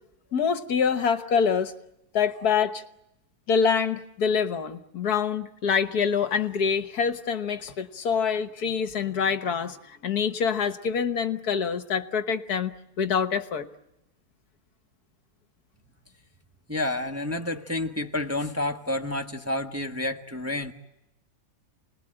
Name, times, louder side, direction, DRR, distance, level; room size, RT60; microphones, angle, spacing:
voice 1, 0.3-1.7 2.1-2.8 3.5-12.7 13.0-13.7, left 6 dB, 65° left, 10 dB, 1.7 m, -25 dB
voice 2, 16.7-20.7, left 2 dB, 10° right, 4 dB, 1.2 m, -29 dB
30.0 x 20.5 x 8.9 m, 0.89 s
omnidirectional pair, 1.8 m